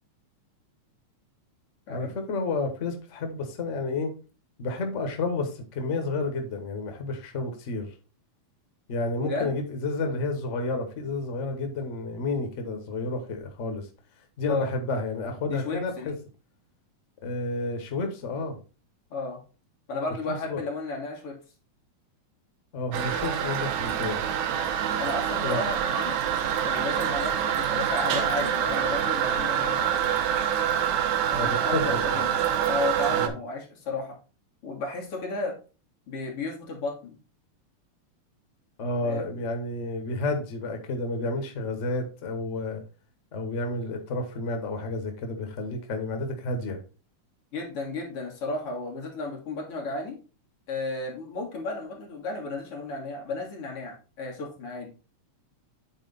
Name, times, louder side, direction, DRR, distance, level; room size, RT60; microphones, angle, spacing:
voice 1, 1.9-4.1 4.6-7.9 8.9-13.9 14.4-16.1 17.2-18.6 20.5-20.6 22.7-24.2 25.4-25.6 31.3-32.2 33.1-33.3 38.8-42.8 43.3-46.8, left 2 dB, 80° left, 5 dB, 0.6 m, -30 dB
voice 2, 9.2-9.5 14.5-14.7 15.5-16.1 19.1-19.4 19.9-21.4 25.0-26.2 26.6-29.9 31.4-34.2 34.6-35.6 36.1-37.2 39.0-39.4 47.5-50.2 50.7-54.9, left 2 dB, 50° left, -1 dB, 2.7 m, -33 dB
Toilet flush, 22.9-33.3, right 9 dB, 75° right, 2.1 m, -26 dB
9.0 x 4.2 x 4.0 m, 0.34 s
omnidirectional pair, 3.3 m